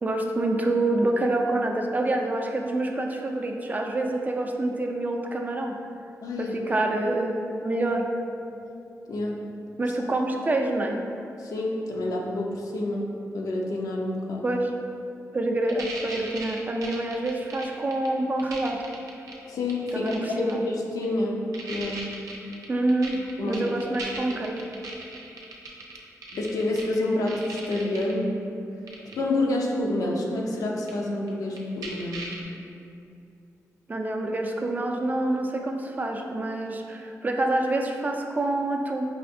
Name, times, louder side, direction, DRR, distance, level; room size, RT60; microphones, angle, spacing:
voice 1, 0.0-5.8 6.4-8.1 9.8-11.0 14.4-14.7 15.3-18.8 19.9-20.6 22.7-23.1 23.5-24.6 33.9-39.1, right 2 dB, 30° right, 2 dB, 0.3 m, -27 dB
voice 2, 6.2-6.7 9.1-9.4 11.4-14.4 19.5-22.1 23.4-23.7 26.3-28.3 29.2-32.3, left 2 dB, 80° left, -1 dB, 0.5 m, -28 dB
sound 1, 15.7-18.1 18.4-19.3 19.7-20.5 21.0-21.1 21.5-27.0 27.3-28.1 28.9-29.1 30.9-31.0 31.3-31.4 31.6-32.4, right 3 dB, 85° right, 0.5 m, -37 dB
4.8 x 2.5 x 2.6 m, 2.6 s
cardioid pair, 80°, 6 cm